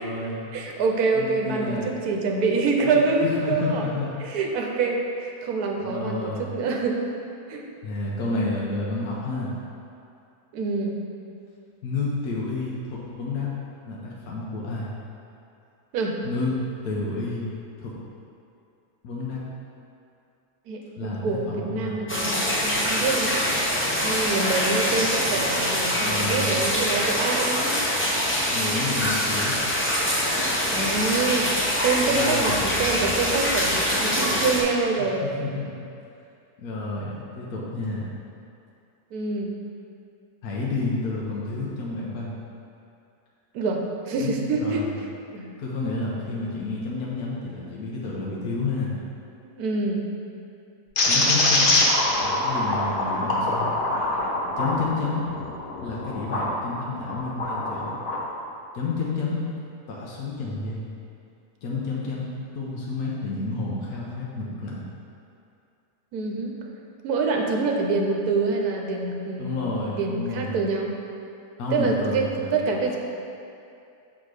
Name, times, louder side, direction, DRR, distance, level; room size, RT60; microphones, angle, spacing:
voice 1, 0.0-0.5 1.1-1.9 2.8-4.2 5.8-6.5 7.8-9.5 11.8-13.5 13.9-14.9 16.2-17.5 17.8-17.9 19.0-19.4 21.0-22.0 25.5-25.6 26.0-26.6 28.5-29.5 32.0-32.6 35.0-35.8 36.6-38.1 40.4-42.3 44.2-44.9 45.6-48.9 51.1-51.7 52.2-53.7 54.6-55.2 55.8-57.9 58.7-59.4 59.9-60.9 61.6-64.8 69.4-70.6 71.6-72.6, left 3 dB, 70° left, -5 dB, 1.3 m, -30 dB
voice 2, 0.5-3.9 4.2-7.1 7.5-7.7 10.5-11.0 15.9-16.2 20.7-23.4 24.0-28.1 30.7-31.5 31.8-35.3 39.1-39.5 43.5-45.1 45.3-45.5 49.4-50.1 66.1-66.6 67.0-70.9 71.7-73.0, right 3 dB, 75° right, 1 dB, 1.2 m, -26 dB
sound 1, 22.1-34.6, equal, 20° left, 0.3 m, -24 dB
sound 2, 51.0-56.5 57.0-58.2, left 2 dB, 45° left, 0.8 m, -24 dB
6.0 x 4.2 x 4.9 m, 2.6 s
omnidirectional pair, 1.6 m